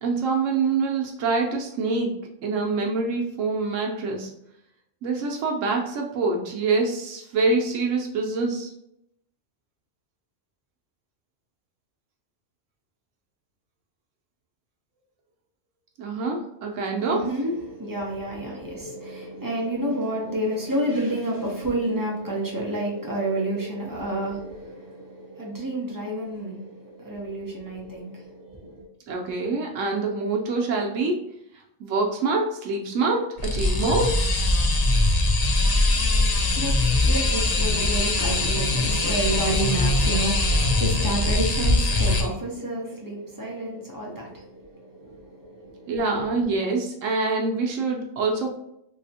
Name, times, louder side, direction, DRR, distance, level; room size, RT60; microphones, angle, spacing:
voice 1, 0.0-2.1 2.4-4.3 5.0-8.7 16.0-17.2 29.1-31.2 31.8-34.1 45.9-48.5, right 3 dB, 90° right, 1 dB, 1.0 m, -25 dB
voice 2, 17.0-28.9 36.0-45.9, right 1 dB, 30° right, -3 dB, 0.4 m, -30 dB
sound 1, 33.4-42.2, left 2 dB, 50° left, 0.5 m, -22 dB
3.2 x 2.8 x 2.7 m, 0.78 s
omnidirectional pair, 1.3 m